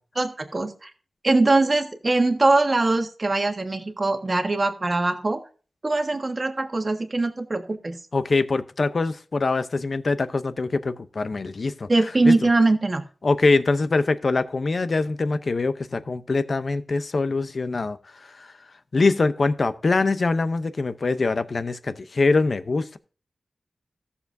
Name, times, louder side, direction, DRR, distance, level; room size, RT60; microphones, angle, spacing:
voice 1, 0.2-0.9 1.2-5.4 5.8-8.0 11.9-13.0, right 2 dB, 35° right, 1.5 m, -22 dB
voice 2, 8.1-11.9 12.3-12.4 13.2-18.0 18.4-18.5 18.9-23.0, left 3 dB, 55° left, 0.7 m, -23 dB
16.0 x 7.0 x 2.7 m
wide cardioid pair, 110°, 0 cm